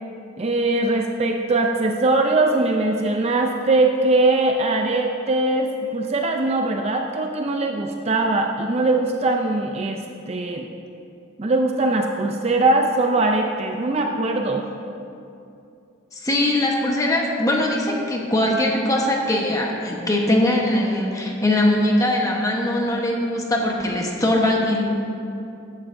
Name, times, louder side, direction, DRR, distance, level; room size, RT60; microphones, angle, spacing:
voice 1, 0.4-10.0 10.3-10.7 11.4-14.6, right 2 dB, 30° right, 2 dB, 0.5 m, -21 dB
voice 2, 16.1-24.8, left 1 dB, 15° left, -1 dB, 1.1 m, -21 dB
14.5 x 11.0 x 2.7 m, 2.6 s
head